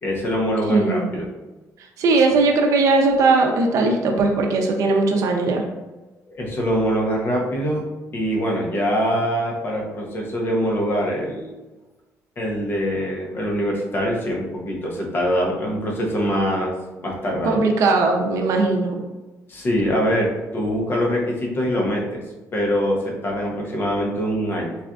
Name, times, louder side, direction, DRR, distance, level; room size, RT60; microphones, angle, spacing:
voice 1, 0.0-1.3 6.3-7.8 8.1-11.5 12.4-16.7 17.0-17.6 19.5-22.2 22.5-24.8, equal, 35° left, -1 dB, 0.7 m, -23 dB
voice 2, 0.7-1.1 2.0-5.6 17.4-19.0, right 3 dB, 65° right, 2 dB, 0.5 m, -19 dB
4.1 x 2.4 x 2.3 m, 1.1 s
cardioid pair, 140°, 6 cm